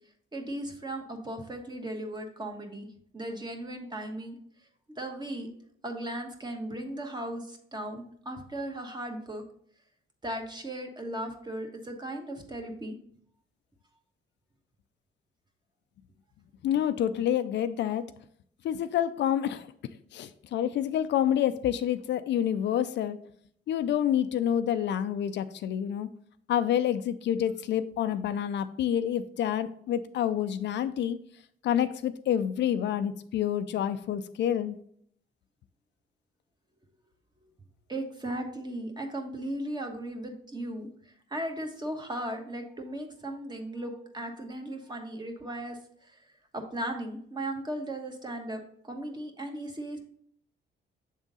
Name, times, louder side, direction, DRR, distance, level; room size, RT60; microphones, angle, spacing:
voice 1, 0.3-2.9 3.1-4.4 5.0-5.5 5.8-9.4 10.2-13.0 37.9-46.2 46.5-50.0, right 1 dB, 20° right, 3 dB, 1.2 m, -37 dB
voice 2, 16.6-18.1 18.6-19.7 20.1-23.2 23.7-26.1 26.5-31.2 31.6-34.8, left 10 dB, 65° left, 11 dB, 0.4 m, -28 dB
7.2 x 3.6 x 4.0 m, 0.65 s
cardioid pair, 90°, 20 cm